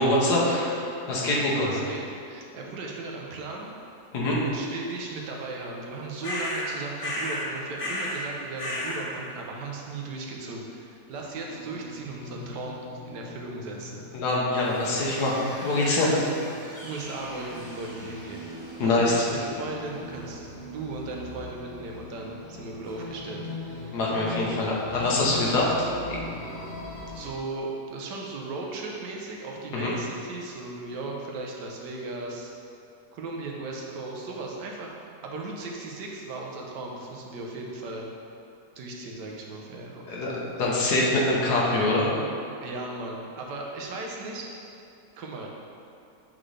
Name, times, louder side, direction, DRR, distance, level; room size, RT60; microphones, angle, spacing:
voice 1, 0.0-1.8 4.1-4.4 14.1-16.1 18.8-19.3 23.9-26.2 29.7-29.9 40.1-42.1, left 2 dB, 75° left, -4 dB, 1.6 m, -24 dB
voice 2, 1.2-3.7 4.4-12.8 13.1-14.0 16.1-16.3 16.8-18.4 18.8-23.4 27.1-32.5 33.1-35.0 35.2-38.1 38.8-40.2 42.6-44.5 45.2-45.5, right 3 dB, 90° right, -1 dB, 1.4 m, -37 dB
sound 1, 6.2-6.7 7.0-7.5 7.8-8.2 8.6-9.0, left 1 dB, 40° left, 0.4 m, -31 dB
sound 2, 11.1-27.3, left 1 dB, 15° left, 1.3 m, -41 dB
7.5 x 4.0 x 3.3 m, 2.6 s
omnidirectional pair, 1.8 m